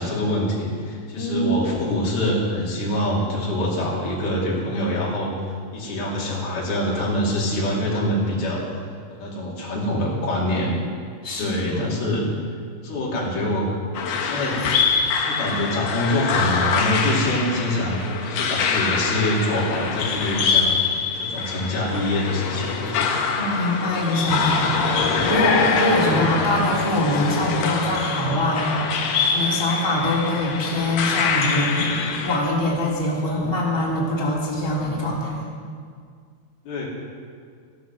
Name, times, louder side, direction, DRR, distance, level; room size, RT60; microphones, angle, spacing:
voice 1, 0.0-5.3 5.7-8.8 9.1-10.8 11.4-12.3 12.8-13.7 14.1-14.6 15.2-20.7 21.1-22.7 36.6-36.9, left 1 dB, 80° left, -4 dB, 4.6 m, -25 dB
voice 2, 1.2-1.5 11.2-11.8 23.4-35.4, left 1 dB, 5° left, -6 dB, 2.6 m, -24 dB
sound 1, 13.9-32.4, left 5 dB, 65° left, 1.8 m, -24 dB
15.0 x 12.5 x 6.2 m, 2.1 s
omnidirectional pair, 4.3 m